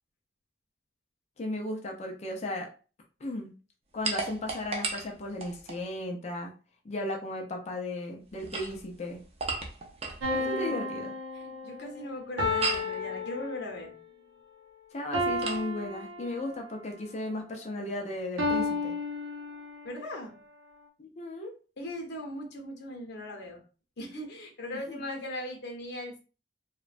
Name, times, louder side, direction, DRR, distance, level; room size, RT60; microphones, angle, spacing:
voice 1, 1.4-2.7 3.2-3.5 3.9-6.5 6.8-9.2 10.3-11.1 14.9-18.9 21.0-21.5 24.9-25.0, left 1 dB, 35° left, 2 dB, 0.5 m, -35 dB
sound 1, 4.0-5.8 8.3-10.3 12.6-13.0 15.4-15.7, right 3 dB, 35° right, 0.5 m, -34 dB
sound 2, 10.2-14.0 15.1-16.7 18.4-19.9, left 2 dB, 85° right, 0.7 m, -32 dB
voice 2, 10.4-10.7 11.3-13.9 19.8-20.3 21.8-23.6 24.0-26.2, left 1 dB, 60° left, 2 dB, 0.9 m, -39 dB
3.0 x 2.2 x 2.4 m, 0.35 s
head